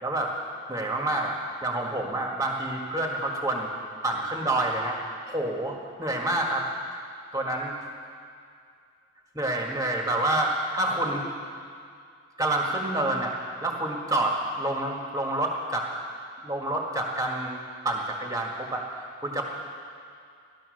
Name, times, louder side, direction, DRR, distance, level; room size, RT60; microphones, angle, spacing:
voice 1, 0.0-0.3 0.7-3.7 4.0-5.0 5.3-6.7 7.3-7.7 9.3-11.2 12.4-13.3 13.6-15.9 16.4-17.6 17.8-19.5, right 1 dB, 15° right, 0 dB, 1.7 m, -28 dB
16.0 x 12.0 x 6.5 m, 2.3 s
head